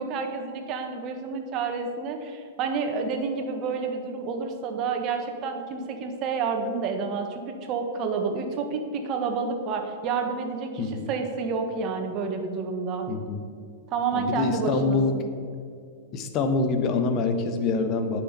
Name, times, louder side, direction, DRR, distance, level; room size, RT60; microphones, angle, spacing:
voice 1, 0.0-13.1 13.9-15.2, right 5 dB, 45° right, 5 dB, 1.6 m, -29 dB
voice 2, 10.8-11.1 13.1-13.4 14.1-15.1 16.1-18.2, left 4 dB, 40° left, 7 dB, 1.3 m, -25 dB
9.8 x 6.5 x 6.9 m, 2.3 s
hypercardioid pair, 105°, 0 cm